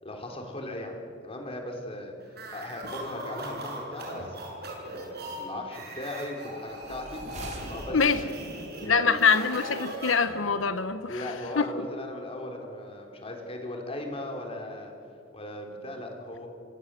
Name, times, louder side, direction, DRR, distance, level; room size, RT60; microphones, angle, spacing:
voice 1, 0.0-2.1 2.5-4.4 4.8-7.2 7.7-8.3 8.7-9.2 11.1-14.9 15.3-16.5, left 1 dB, 30° left, 2 dB, 4.0 m, -38 dB
sound 1, 2.3-10.6, right 1 dB, 55° right, 6.8 m, -40 dB
sound 2, 6.7-8.5, right 1 dB, 40° right, 4.3 m, -41 dB
voice 2, 8.9-11.1 11.6-11.7, left 5 dB, 90° left, 11 dB, 1.2 m, -24 dB
27.5 x 25.0 x 7.8 m, 2.6 s
head